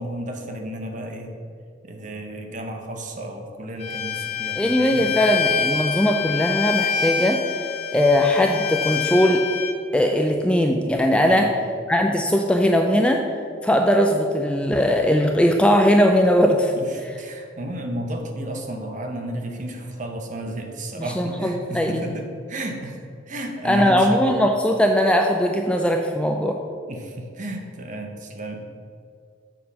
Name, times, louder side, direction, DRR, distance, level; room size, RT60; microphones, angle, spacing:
voice 1, 0.0-1.3 1.8-5.1 11.2-11.5 16.8-24.4 26.9-28.7, right 1 dB, 40° right, 3 dB, 0.8 m, -32 dB
Bowed string instrument, 3.8-9.7, left 7 dB, 35° left, 0.7 m, -26 dB
voice 2, 4.6-7.4 7.9-9.4 9.9-11.5 11.9-13.2 13.6-16.7 21.2-22.0 23.6-26.6, equal, 5° left, 2 dB, 0.3 m, -19 dB
7.4 x 4.3 x 5.5 m, 2.3 s
head